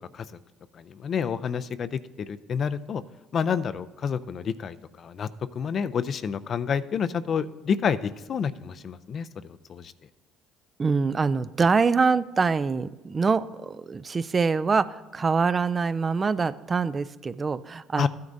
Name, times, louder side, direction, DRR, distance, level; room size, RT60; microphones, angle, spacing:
voice 1, 0.7-3.0 3.3-5.3 5.5-9.9 18.0-18.1, left 7 dB, 50° left, 13 dB, 0.4 m, -29 dB
voice 2, 10.8-18.1, right 4 dB, 30° right, 15 dB, 0.3 m, -24 dB
14.5 x 9.4 x 2.6 m, 1.1 s
supercardioid pair, 75°, 0 cm